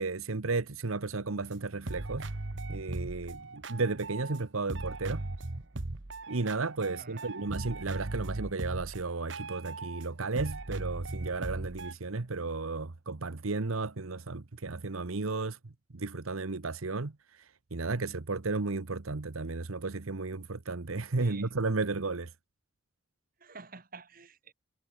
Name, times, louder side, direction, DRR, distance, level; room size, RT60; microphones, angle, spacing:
voice 1, 0.0-2.3 2.7-5.3 6.3-15.6 15.9-17.1 17.7-22.3, right 3 dB, 80° right, 1.1 m, -33 dB
sound 1, 1.5-1.6 1.8-4.4 4.7-10.1 10.4-11.9, right 2 dB, 60° right, 1.3 m, -38 dB
voice 2, 7.0-7.3 21.2-21.5 23.4-24.5, right 4 dB, 40° right, 1.8 m, -49 dB
head